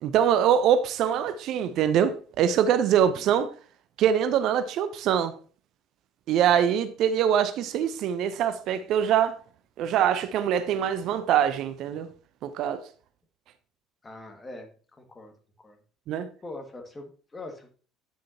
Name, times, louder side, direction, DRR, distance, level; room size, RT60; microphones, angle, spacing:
voice 1, 0.0-3.5 4.0-5.3 6.3-9.4 9.8-12.1 12.4-12.8 16.1-16.3, right 9 dB, 55° right, 0.5 m, -23 dB
voice 2, 14.0-15.3 15.6-15.8 16.4-17.8, left 2 dB, 20° left, 1.8 m, -42 dB
9.1 x 7.4 x 2.8 m
figure-of-eight pair, 60°, 0 cm